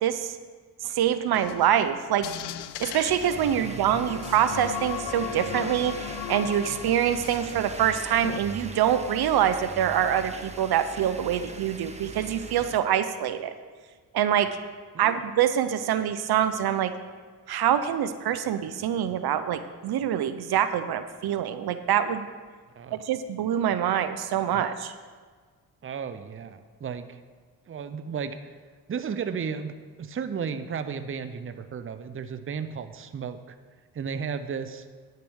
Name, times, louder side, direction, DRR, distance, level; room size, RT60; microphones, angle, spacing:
voice 1, 0.0-0.4 0.8-2.3 2.8-13.5 14.1-14.6 15.0-16.9 17.5-22.2 22.9-24.9, right 10 dB, 70° right, 11 dB, 0.7 m, -25 dB
sound 1, 1.3-7.9 8.2-8.4, left 11 dB, 80° left, 0.6 m, -37 dB
sound 2, 3.1-12.8, right 2 dB, 15° right, 1.1 m, -40 dB
voice 2, 25.8-27.2 27.7-28.4 28.9-33.4 33.9-34.9, right 6 dB, 30° right, 10 dB, 0.7 m, -34 dB
10.0 x 6.7 x 6.3 m, 1.5 s
cardioid pair, 70°, 40 cm